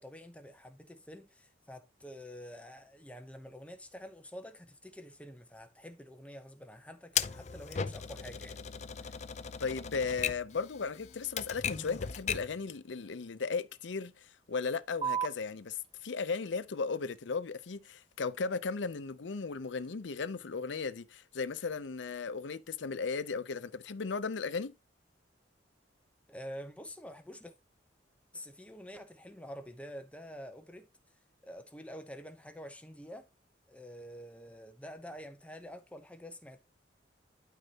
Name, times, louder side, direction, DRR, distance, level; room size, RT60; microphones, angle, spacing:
voice 1, 0.0-8.6 26.3-27.5 28.3-30.9 31.4-33.3 33.7-36.6, equal, 5° left, 0.7 m, -48 dB
Typewriter, 7.2-12.6, left 7 dB, 40° left, 0.5 m, -37 dB
voice 2, 9.6-24.7, left 4 dB, 80° left, 0.6 m, -36 dB
sound 1, 15.0-22.0, right 8 dB, 30° right, 0.7 m, -44 dB
12.0 x 4.4 x 2.9 m
head